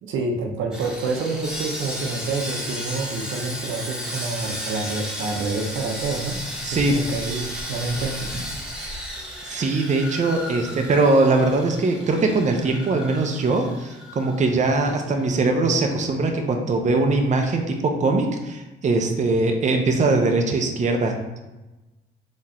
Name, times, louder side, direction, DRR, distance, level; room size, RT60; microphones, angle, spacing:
voice 1, 0.0-6.4 6.7-8.3, right 3 dB, 80° right, 2 dB, 0.8 m, -28 dB
Sawing, 0.7-15.0 15.2-15.4 15.9-16.0, equal, 5° right, 1.1 m, -34 dB
voice 2, 6.6-6.9 8.8-9.0 9.4-21.1, right 3 dB, 35° right, 3 dB, 0.7 m, -21 dB
3.8 x 3.1 x 4.2 m, 1.1 s
cardioid pair, 90°, 20 cm